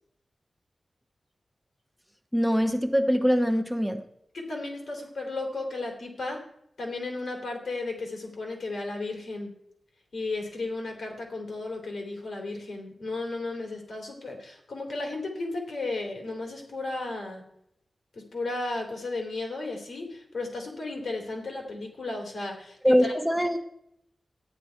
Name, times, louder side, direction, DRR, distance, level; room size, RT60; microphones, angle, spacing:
voice 1, 2.3-4.0 22.8-23.6, equal, ahead, 5 dB, 1.0 m, -23 dB
voice 2, 4.3-6.4 6.8-9.5 10.1-17.4 18.1-23.1, left 2 dB, 75° left, 2 dB, 3.1 m, -34 dB
13.0 x 10.0 x 4.6 m, 0.76 s
wide cardioid pair, 80°, 0 cm